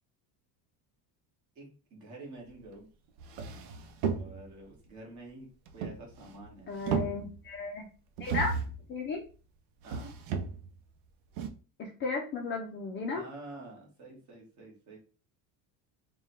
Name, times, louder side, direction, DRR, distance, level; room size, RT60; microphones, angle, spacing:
voice 1, 1.5-2.9 4.1-5.5 5.7-6.8 9.8-10.1 13.1-15.0, right 2 dB, 45° right, -1 dB, 1.6 m, -48 dB
sound 1, 2.7-2.8 3.2-4.6 5.7-6.5 6.7-7.6 8.2-8.8 9.8-10.8 11.4-11.5, right 5 dB, 75° right, 0.7 m, -34 dB
voice 2, 6.7-7.9 8.2-8.6 8.9-9.2 11.8-13.2, left 3 dB, 30° left, 1 dB, 0.4 m, -34 dB
3.5 x 2.3 x 4.2 m, 0.36 s
cardioid pair, 180°, 41 cm